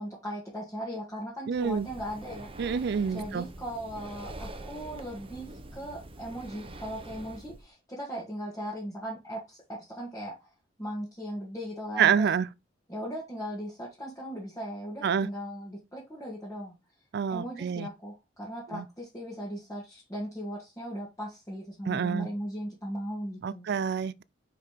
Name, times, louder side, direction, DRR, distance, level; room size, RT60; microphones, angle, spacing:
voice 1, 0.0-2.5 3.1-10.5 10.8-12.3 12.9-16.7 17.3-23.7, equal, 15° left, 2.1 m, -38 dB
Breathing, 1.5-7.6, right 2 dB, 30° right, 0.8 m, -45 dB
voice 2, 1.5-1.9 2.6-3.5 12.0-12.5 15.0-15.3 17.1-17.9 18.7-18.8 21.9-22.3 23.4-24.2, right 7 dB, 60° right, 0.4 m, -27 dB
5.1 x 4.9 x 4.4 m
head